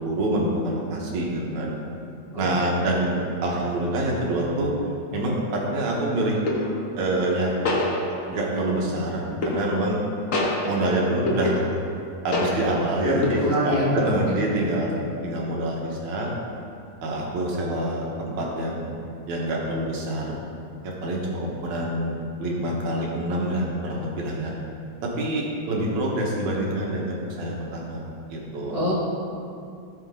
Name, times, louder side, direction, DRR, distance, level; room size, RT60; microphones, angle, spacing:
voice 1, 0.0-1.7 2.4-4.7 5.1-6.4 7.0-7.7 8.3-10.0 10.6-11.6 12.2-14.9 15.2-16.3 17.0-19.0 19.3-20.4 20.8-24.5 25.0-28.7, right 1 dB, 75° right, -3 dB, 2.8 m, -26 dB
sound 1, 4.9-5.1 6.5-6.9 7.6-8.6 9.4-10.0 10.3-12.0 12.3-12.9 13.2-13.8, left 1 dB, 80° left, 0.7 m, -27 dB
voice 2, 13.0-13.9 28.7-28.9, left 1 dB, 15° left, -8 dB, 1.6 m, -24 dB
16.5 x 6.5 x 3.8 m, 2.5 s
omnidirectional pair, 3.3 m